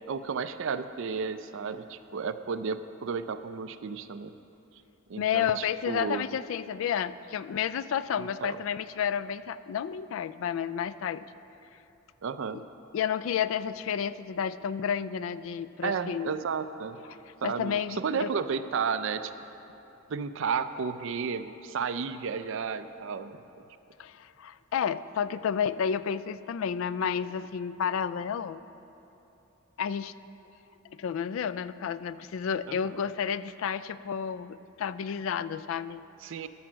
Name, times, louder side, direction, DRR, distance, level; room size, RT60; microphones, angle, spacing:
voice 1, 0.1-4.3 5.1-6.3 8.2-8.6 12.2-12.6 15.8-17.0 17.4-19.3 20.1-23.4 32.7-33.1 36.2-36.5, right 5 dB, 65° right, 11 dB, 0.4 m, -33 dB
voice 2, 5.2-11.2 12.5-12.6 12.9-16.3 17.1-18.3 24.0-28.6 29.8-30.1 30.8-36.0, left 8 dB, 70° left, 16 dB, 0.3 m, -31 dB
13.5 x 6.2 x 6.1 m, 2.9 s
head